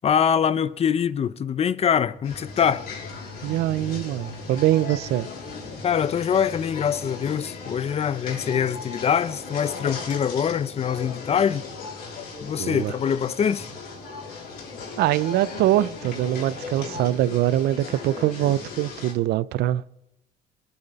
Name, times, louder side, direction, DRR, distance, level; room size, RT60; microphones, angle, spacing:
voice 1, 0.0-2.9 5.8-11.7 12.4-13.7, left 8 dB, 40° left, 0.6 m, -24 dB
sound 1, 2.2-19.1, left 4 dB, 70° left, 3.7 m, -37 dB
voice 2, 3.4-5.3 12.6-12.9 15.0-20.0, right 13 dB, 75° right, 0.5 m, -23 dB
22.0 x 8.8 x 4.1 m
cardioid pair, 110°, 17 cm